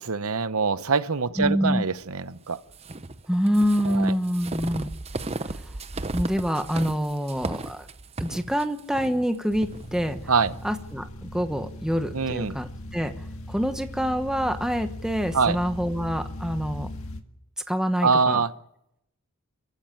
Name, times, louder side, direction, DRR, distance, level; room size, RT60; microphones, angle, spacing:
voice 1, 0.1-2.6 3.9-4.1 10.3-10.5 12.1-12.6 15.3-15.6 18.0-18.5, right 5 dB, 75° right, 13 dB, 0.9 m, -24 dB
voice 2, 1.4-1.8 3.3-4.9 5.4-5.7 6.1-7.9 8.2-10.2 10.6-13.1 13.5-16.9 17.7-18.4, equal, 5° right, 7 dB, 1.1 m, -26 dB
sound 1, 2.7-10.6, right 2 dB, 30° right, 0.8 m, -35 dB
sound 2, 9.5-17.2, left 1 dB, 70° left, 1.8 m, -39 dB
26.5 x 15.5 x 9.1 m, 0.81 s
head